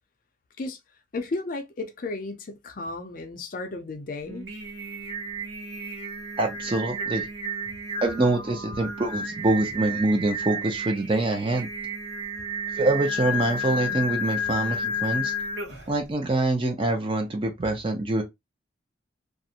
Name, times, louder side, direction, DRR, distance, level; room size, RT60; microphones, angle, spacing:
voice 1, 1.1-4.4, left 3 dB, 45° left, 0.4 m, -34 dB
Singing, 4.2-16.0, left 1 dB, 80° right, 0.8 m, -32 dB
voice 2, 6.4-7.3 8.0-11.7 12.7-15.3 15.9-18.2, right 2 dB, 25° right, 0.5 m, -25 dB
2.5 x 2.0 x 2.7 m
head